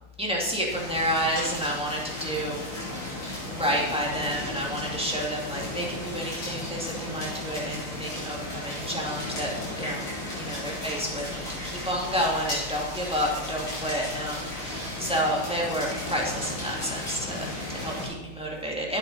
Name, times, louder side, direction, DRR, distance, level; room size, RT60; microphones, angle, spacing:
voice 1, 0.2-2.6 3.5-9.5 9.8-10.1 10.3-19.0, equal, 5° right, -3 dB, 2.0 m, -30 dB
sound 1, 0.7-18.1, left 1 dB, 80° left, 5.9 m, -35 dB
11.5 x 9.4 x 4.2 m, 1.0 s
omnidirectional pair, 2.3 m